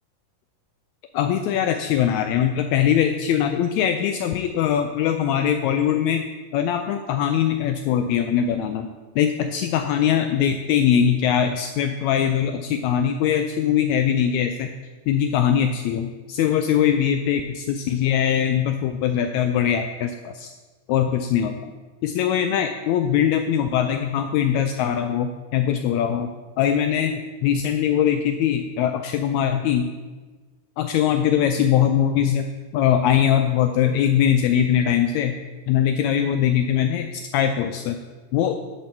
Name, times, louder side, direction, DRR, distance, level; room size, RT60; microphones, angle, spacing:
voice 1, 1.1-6.2 6.5-8.9 9.1-14.7 15.1-20.5 20.9-21.5 22.0-26.3 26.6-27.1 27.4-29.9 30.8-32.5 32.7-35.4 35.7-38.0 38.3-38.6, left 9 dB, 85° left, 6 dB, 1.6 m, -21 dB
10.5 x 4.4 x 6.9 m, 1.3 s
omnidirectional pair, 3.8 m